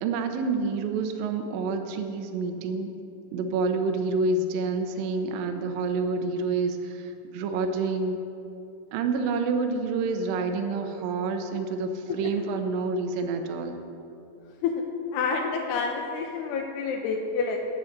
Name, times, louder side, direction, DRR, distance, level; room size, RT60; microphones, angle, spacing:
voice 1, 0.0-2.9 3.3-8.2 8.9-13.8, right 4 dB, 75° right, 5 dB, 2.2 m, -28 dB
voice 2, 15.1-17.6, left 5 dB, 85° left, 2 dB, 2.7 m, -28 dB
10.0 x 7.1 x 7.9 m, 2.8 s
omnidirectional pair, 4.7 m